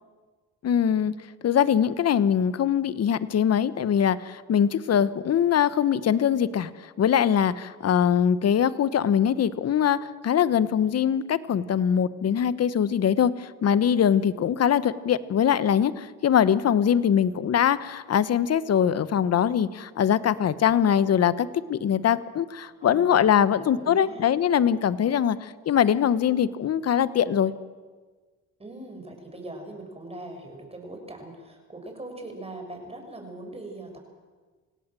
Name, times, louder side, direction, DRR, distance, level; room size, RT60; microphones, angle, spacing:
voice 1, 0.6-1.1 1.4-27.5, left 8 dB, 55° left, 15 dB, 1.2 m, -22 dB
voice 2, 22.6-23.3 23.5-24.3 28.6-34.0, right 2 dB, 20° right, 3 dB, 6.9 m, -41 dB
27.5 x 17.5 x 7.7 m, 1.4 s
cardioid pair, 90°, 30 cm